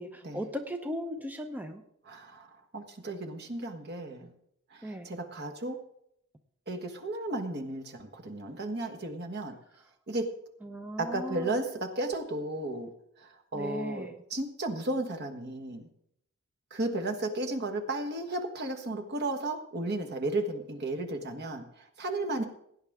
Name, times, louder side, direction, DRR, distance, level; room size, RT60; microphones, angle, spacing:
voice 1, 0.0-1.8 4.8-5.1 10.6-11.6 13.5-14.2 22.4-22.5, equal, 10° right, 6 dB, 0.7 m, -37 dB
voice 2, 2.0-4.3 4.7-5.8 6.7-9.5 10.1-10.3 11.0-12.9 13.2-15.8 16.7-22.4, right 2 dB, 50° right, 4 dB, 1.4 m, -34 dB
17.0 x 9.5 x 3.6 m, 0.74 s
head